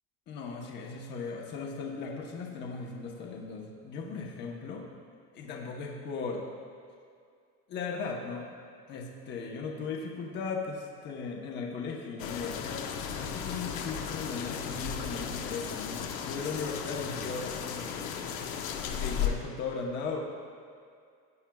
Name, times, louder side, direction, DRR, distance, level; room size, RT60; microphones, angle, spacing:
voice 1, 0.3-4.9 5.3-6.4 7.7-8.5 8.9-18.4 18.9-20.2, left 4 dB, 35° left, -1 dB, 1.0 m, -37 dB
sound 1, 12.2-19.3, left 8 dB, 70° left, 0.9 m, -35 dB
16.5 x 8.8 x 2.3 m, 2.3 s
cardioid pair, 175°, 31 cm